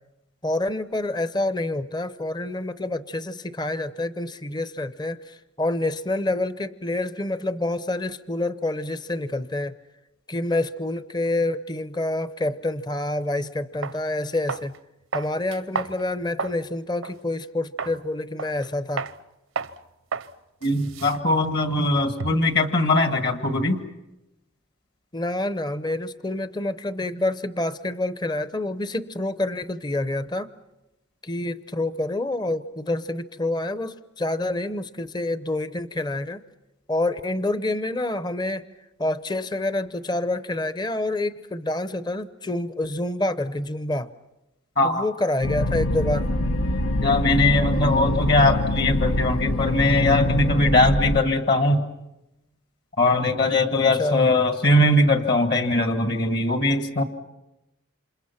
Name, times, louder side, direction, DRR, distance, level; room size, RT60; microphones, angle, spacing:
voice 1, 0.4-9.8 10.3-14.7 15.1-19.1 25.1-30.5 31.2-36.4 36.9-38.6 39.0-44.1 44.8-46.3 53.7-54.3, left 2 dB, 20° left, 13 dB, 0.8 m, -27 dB
sound 1, 13.3-13.4 13.8-14.0 14.5-14.8 15.1-16.6 17.0-17.2 17.8-18.0 18.4-18.7 19.0-19.2 19.6-19.8 20.1-20.3 20.6-22.5, right 5 dB, 75° right, 0.8 m, -32 dB
voice 2, 20.6-23.8 44.8-45.1 47.0-51.8 53.0-57.0, left 2 dB, 50° left, 6 dB, 1.9 m, -20 dB
sound 2, 45.4-51.2, left 1 dB, 85° left, 1.1 m, -24 dB
28.5 x 27.0 x 5.9 m, 0.95 s
head